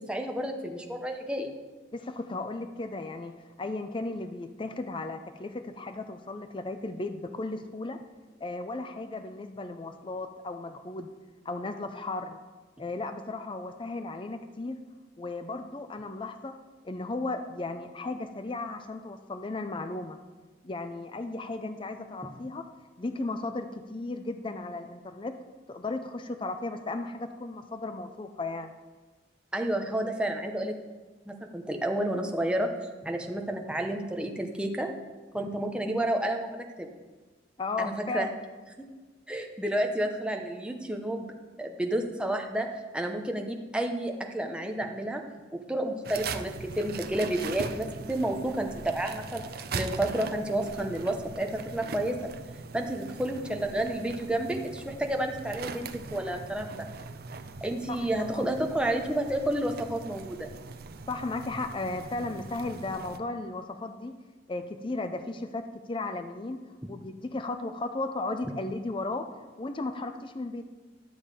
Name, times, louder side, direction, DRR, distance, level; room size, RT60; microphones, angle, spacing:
voice 1, 0.1-1.5 29.5-30.8 31.3-32.7 33.0-34.9 35.3-36.9 37.8-38.3 38.8-38.9 39.3-41.3 41.6-42.7 42.9-45.2 45.5-49.4 49.7-52.2 52.7-56.9 57.6-60.5, right 1 dB, 5° right, 3 dB, 0.9 m, -30 dB
voice 2, 1.9-3.3 3.6-8.0 8.4-11.1 11.4-12.4 12.8-14.8 15.2-16.6 16.8-20.2 20.6-22.6 23.0-25.3 25.7-28.7 37.6-38.4 57.9-58.4 61.1-64.1 64.5-65.6 65.9-66.6 66.9-69.2 69.6-70.6, left 2 dB, 25° left, 8 dB, 0.5 m, -35 dB
sound 1, 46.0-63.2, right 4 dB, 55° right, 0.6 m, -41 dB
11.5 x 7.2 x 4.9 m, 1.3 s
head